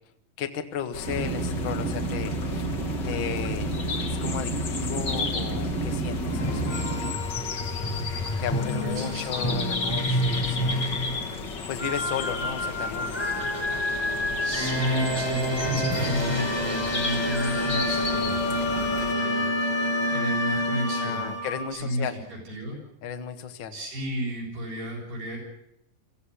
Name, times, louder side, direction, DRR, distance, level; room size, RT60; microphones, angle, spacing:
voice 1, 0.4-2.7 3.0-3.7 4.1-6.9 8.4-10.9 11.7-13.3 21.0-22.2 23.0-23.8, left 7 dB, 50° left, 6 dB, 1.5 m, -34 dB
sound 1, 0.9-19.1, left 4 dB, 75° left, 1.0 m, -35 dB
sound 2, 1.1-7.1, right 2 dB, 50° right, 2.4 m, -30 dB
sound 3, 6.3-21.7, left 1 dB, 5° left, 7.2 m, -28 dB
voice 2, 8.8-9.7 14.4-19.5 20.1-21.3 21.7-22.0 22.3-22.8 23.7-25.4, equal, 80° right, -1 dB, 9.6 m, -33 dB
21.0 x 15.5 x 9.9 m, 0.76 s
omnidirectional pair, 4.4 m